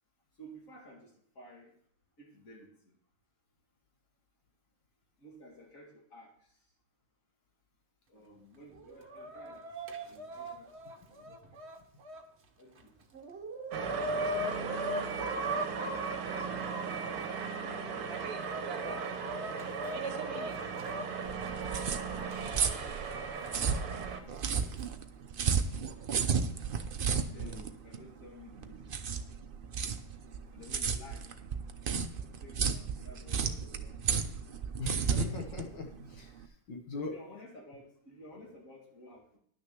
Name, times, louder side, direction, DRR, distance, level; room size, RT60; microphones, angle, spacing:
voice 1, 0.4-1.8 2.2-3.0 5.2-6.6 8.1-9.7 10.0-11.9 12.6-13.1 15.0-16.7 17.6-20.4 23.4-23.8 24.4-24.7 27.1-29.0 30.5-31.3 32.3-34.7 36.9-39.4, left 1 dB, 45° left, -1 dB, 2.8 m, -54 dB
Chicken rooster, 8.7-12.2 12.8-12.9 13.1-17.2 17.8-21.1 22.3-22.4 23.4-23.5 24.5-24.8, right 1 dB, 45° right, 1.1 m, -39 dB
sound 1, 13.7-24.2, right 5 dB, 60° right, 1.4 m, -37 dB
sound 2, 21.3-36.4, right 6 dB, 80° right, 0.4 m, -33 dB
voice 2, 34.8-36.3 36.7-37.1, left 3 dB, 75° left, 3 dB, 2.0 m, -39 dB
11.0 x 6.6 x 6.1 m, 0.63 s
omnidirectional pair, 2.0 m